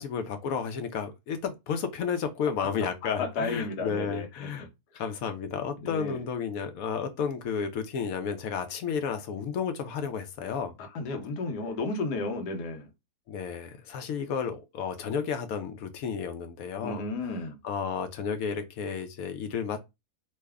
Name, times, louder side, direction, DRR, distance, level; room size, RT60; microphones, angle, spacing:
voice 1, 0.0-4.7 4.9-10.7 13.3-17.0 17.6-19.8, left 6 dB, 70° left, 0.9 m, -32 dB
voice 2, 3.0-4.7 5.8-6.2 10.9-12.9 16.8-17.6, left 3 dB, 85° left, 1.4 m, -33 dB
3.2 x 2.1 x 3.4 m
omnidirectional pair, 1.7 m